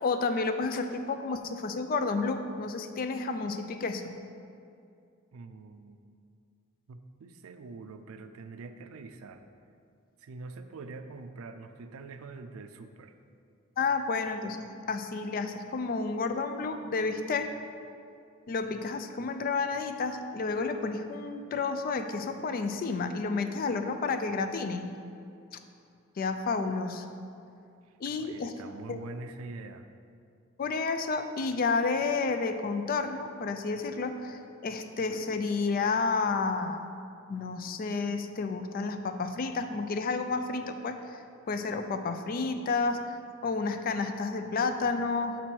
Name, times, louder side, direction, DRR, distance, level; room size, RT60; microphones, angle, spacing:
voice 1, 0.0-4.1 13.8-17.5 18.5-24.8 26.2-27.1 28.0-28.5 28.9-29.0 30.6-36.8 37.3-43.2 43.4-45.4, left 4 dB, 45° left, 8 dB, 0.3 m, -31 dB
voice 2, 5.3-6.0 6.9-9.4 10.2-13.1 28.2-29.9, right 3 dB, 85° right, 9 dB, 0.4 m, -44 dB
6.2 x 4.0 x 4.4 m, 2.5 s
head